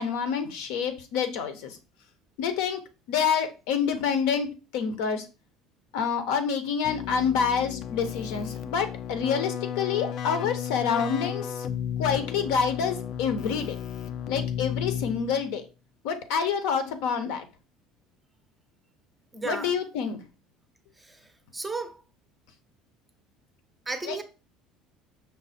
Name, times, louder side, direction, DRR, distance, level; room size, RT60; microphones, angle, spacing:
voice 1, 0.0-1.8 2.4-2.8 3.1-4.5 4.7-5.3 5.9-11.7 12.0-13.8 14.3-15.7 16.0-17.4 19.4-20.2 24.0-24.2, left 6 dB, 75° left, 0.7 m, -27 dB
Keyboard (musical), 6.8-15.6, left 9 dB, 50° left, 0.4 m, -34 dB
voice 2, 19.3-19.7 21.0-21.2 21.5-22.0 23.9-24.2, right 3 dB, 10° right, 0.5 m, -33 dB
5.3 x 2.1 x 4.1 m
cardioid pair, 140°, 0 cm